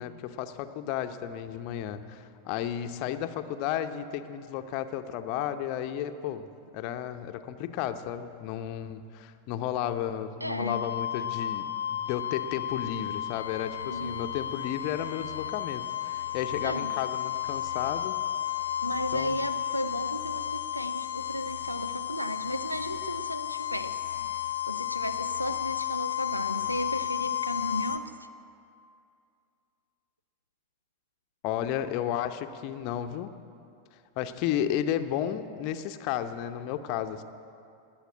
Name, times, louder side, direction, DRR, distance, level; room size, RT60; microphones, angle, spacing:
voice 1, 0.0-6.5 6.7-18.2 19.1-19.4 31.4-33.3 34.2-37.2, left 10 dB, 45° left, 9 dB, 0.8 m, -33 dB
voice 2, 10.4-10.8 13.8-14.3 16.6-16.9 18.8-24.3 24.7-28.1, equal, 90° right, 12 dB, 0.6 m, -34 dB
sound 1, 10.7-28.0, left 11 dB, 75° left, 0.9 m, -33 dB
19.5 x 7.3 x 8.6 m, 2.5 s
figure-of-eight pair, 90°, 0 cm